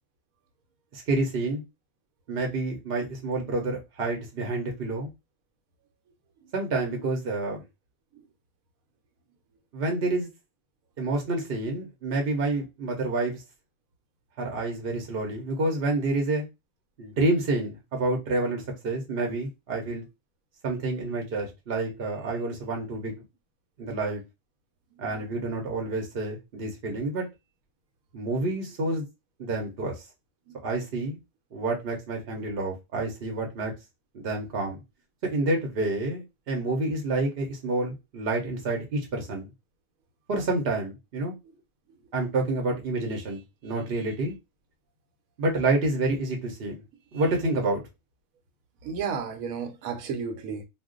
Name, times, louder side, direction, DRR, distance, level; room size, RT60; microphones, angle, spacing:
voice 1, 0.9-1.6 2.3-5.1 6.5-7.6 9.7-10.3 11.0-13.4 14.4-16.5 17.0-20.0 20.6-23.2 23.8-24.2 25.0-27.3 28.1-29.1 29.4-30.0 30.6-31.2 31.5-33.7 34.1-34.8 35.2-39.5 40.3-41.3 42.1-44.3 45.4-46.8 47.1-47.8, right 2 dB, 50° right, 0.8 m, -28 dB
voice 2, 24.9-25.3 30.5-30.6 48.8-50.6, right 6 dB, 75° right, 1.1 m, -33 dB
2.4 x 2.1 x 3.6 m
omnidirectional pair, 1.5 m